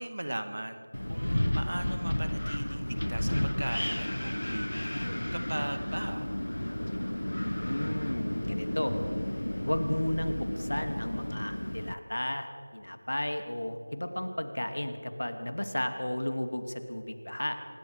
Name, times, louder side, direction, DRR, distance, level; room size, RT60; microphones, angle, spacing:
voice 1, 0.0-6.3, right 1 dB, 45° right, 8 dB, 1.9 m, -38 dB
Wind, 0.9-11.9, left 1 dB, 80° left, 1.2 m, -32 dB
voice 2, 7.5-9.0 9.6-17.6, left 1 dB, 65° left, 7 dB, 2.7 m, -33 dB
26.0 x 22.0 x 5.0 m, 2.4 s
figure-of-eight pair, 180°, 0 cm